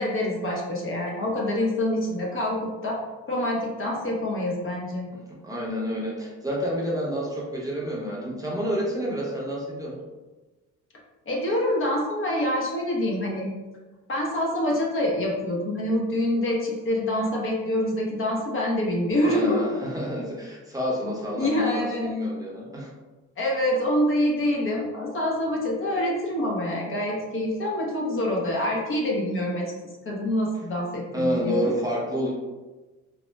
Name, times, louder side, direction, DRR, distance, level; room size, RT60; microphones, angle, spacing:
voice 1, 0.0-3.0 3.3-5.1 11.3-13.5 14.1-19.6 21.4-22.1 23.4-29.7 30.0-31.7, left 1 dB, 45° left, -2 dB, 0.8 m, -26 dB
voice 2, 5.4-10.0 19.2-22.9 31.1-32.3, equal, 10° right, -5 dB, 0.7 m, -29 dB
3.9 x 2.0 x 2.2 m, 1.2 s
cardioid pair, 90°, 30 cm